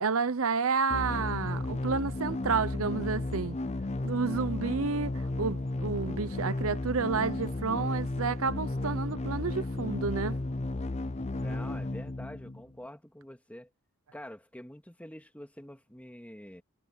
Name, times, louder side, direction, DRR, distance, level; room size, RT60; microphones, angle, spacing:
voice 1, 0.0-3.6 4.0-10.4, right 5 dB, 65° right, 0.8 m, -30 dB
sound 1, 0.9-12.8, left 2 dB, 30° left, 0.7 m, -34 dB
voice 2, 11.4-13.7 14.1-16.6, left 1 dB, 5° left, 2.4 m, -46 dB
head